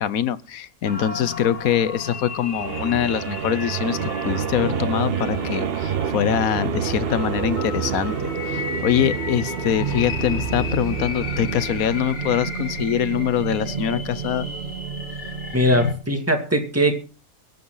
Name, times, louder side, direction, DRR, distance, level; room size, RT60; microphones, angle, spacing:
voice 1, 0.0-14.5, left 9 dB, 75° left, 1.3 m, -24 dB
sound 1, 0.8-15.9, left 3 dB, 55° left, 2.1 m, -33 dB
sound 2, 2.5-15.8, right 7 dB, 50° right, 0.9 m, -29 dB
voice 2, 15.5-17.0, equal, 10° right, 2.3 m, -20 dB
23.0 x 9.1 x 4.0 m
omnidirectional pair, 1.5 m